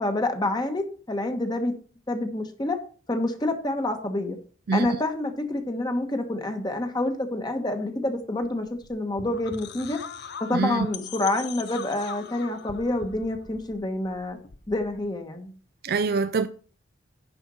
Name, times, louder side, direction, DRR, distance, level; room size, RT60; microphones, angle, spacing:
voice 1, 0.0-1.7 2.1-2.8 3.1-4.4 4.7-10.0 10.4-14.4 14.7-15.5, left 2 dB, 20° left, 1.2 m, -28 dB
sound 1, 8.4-15.2, left 7 dB, 60° left, 0.7 m, -41 dB
voice 2, 10.5-10.9 15.8-16.5, right 4 dB, 50° right, 0.4 m, -24 dB
10.0 x 4.3 x 6.2 m
head